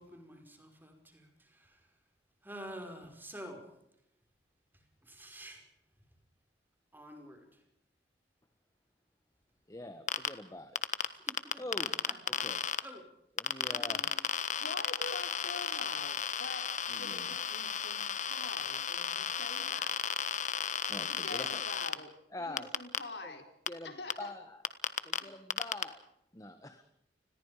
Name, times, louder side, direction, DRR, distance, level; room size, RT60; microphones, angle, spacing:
voice 1, 0.0-1.9 2.4-3.7 4.7-5.7 6.9-7.6 11.1-11.6 12.1-12.5 12.8-13.1 13.5-13.9, equal, 10° right, 5 dB, 5.5 m, -49 dB
voice 2, 9.7-10.9 11.6-12.1 12.4-12.6 13.4-14.0 16.9-17.3 20.9-21.6 22.3-22.7 23.2-23.3 23.7-24.6 25.0-26.0 26.3-26.8, left 1 dB, 20° left, 9 dB, 1.7 m, -45 dB
sound 1, 10.1-10.3 10.8-12.8 13.4-21.9 22.6-23.0 23.7-23.8 24.1-24.2 24.6-25.2 25.5-25.8, left 7 dB, 45° left, 1.4 m, -33 dB
voice 3, 13.7-14.2 14.6-20.0 21.1-22.1 22.5-23.5 23.8-24.3, left 3 dB, 70° left, 6 dB, 4.4 m, -45 dB
29.5 x 21.5 x 5.2 m, 0.76 s
head